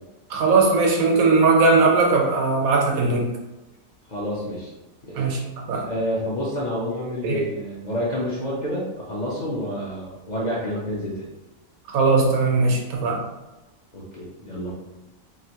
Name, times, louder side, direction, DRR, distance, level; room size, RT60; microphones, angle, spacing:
voice 1, 0.3-3.3 5.1-5.4 5.7-5.9 7.2-7.5 11.9-13.3, right 3 dB, 85° right, 1 dB, 1.1 m, -19 dB
voice 2, 4.1-4.7 5.0-5.2 5.9-11.3 13.9-14.7, equal, 50° left, -6 dB, 0.5 m, -29 dB
3.0 x 2.5 x 2.8 m, 1.0 s
omnidirectional pair, 1.4 m